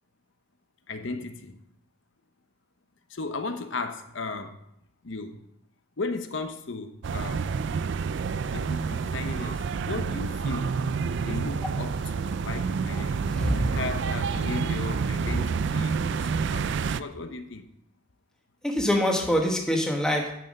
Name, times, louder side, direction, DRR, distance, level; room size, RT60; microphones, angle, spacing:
voice 1, 0.9-1.6 3.1-4.6 5.0-5.4 6.0-7.5 8.5-10.7 11.2-13.3 13.5-16.7 16.9-17.6, left 3 dB, 60° left, 8 dB, 0.9 m, -36 dB
sound 1, 7.0-17.0, right 5 dB, 60° right, 0.4 m, -28 dB
voice 2, 13.3-13.7 15.2-15.4 18.6-20.3, equal, 5° left, 1 dB, 1.3 m, -25 dB
10.5 x 5.9 x 5.4 m, 0.79 s
head